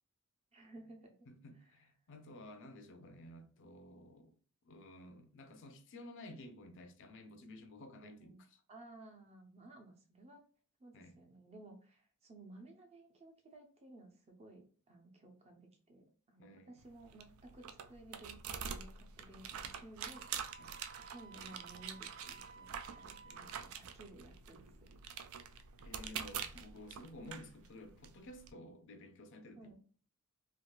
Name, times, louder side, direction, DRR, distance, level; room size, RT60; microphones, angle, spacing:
voice 1, 0.5-1.3 1.6-1.8 8.0-8.4 8.7-10.4 10.8-20.2 20.9-25.0 29.6-29.8, right 2 dB, 30° right, 0.6 m, -56 dB
voice 2, 1.3-4.3 4.6-8.6 10.9-11.2 16.4-16.8 20.6-20.7 23.2-23.6 25.8-29.8, left 1 dB, 55° left, 0.5 m, -53 dB
sound 1, 16.8-28.5, right 7 dB, 70° right, 0.4 m, -46 dB
Wind instrument woodwind instrument, 20.1-23.7, right 5 dB, 90° right, 1.0 m, -56 dB
3.4 x 2.4 x 2.3 m
head